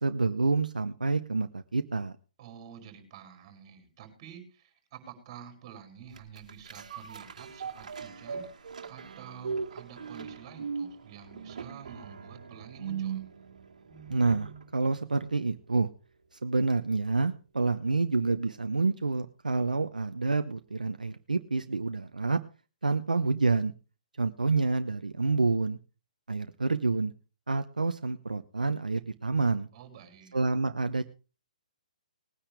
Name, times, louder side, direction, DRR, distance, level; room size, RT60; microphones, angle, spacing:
voice 1, 0.0-2.1 14.1-15.9 16.3-22.4 22.8-23.7 24.2-25.8 26.3-27.1 27.5-29.7 30.3-31.0, right 3 dB, 85° right, 9 dB, 0.9 m, -28 dB
voice 2, 2.4-13.3 29.7-30.4, right 8 dB, 35° right, 5 dB, 5.4 m, -49 dB
sound 1, 6.1-14.7 15.1-15.2, right 6 dB, 65° right, 2.4 m, -39 dB
20.0 x 10.0 x 3.4 m, 0.33 s
figure-of-eight pair, 130°, 4 cm